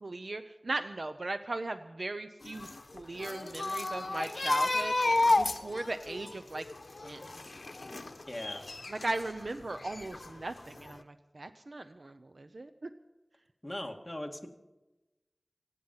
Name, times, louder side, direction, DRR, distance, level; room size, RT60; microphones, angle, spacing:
voice 1, 0.0-2.7 2.9-5.0 5.4-6.6 7.0-7.2 8.9-12.9, right 2 dB, 85° right, 9 dB, 0.7 m, -38 dB
sound 1, 2.4-9.3 9.7-10.6 10.9-11.0, left 2 dB, 80° left, 0.9 m, -32 dB
voice 2, 8.3-8.6 13.6-14.5, left 1 dB, 20° left, 2 dB, 2.2 m, -39 dB
27.0 x 9.2 x 5.7 m, 1.1 s
wide cardioid pair, 50°, 0 cm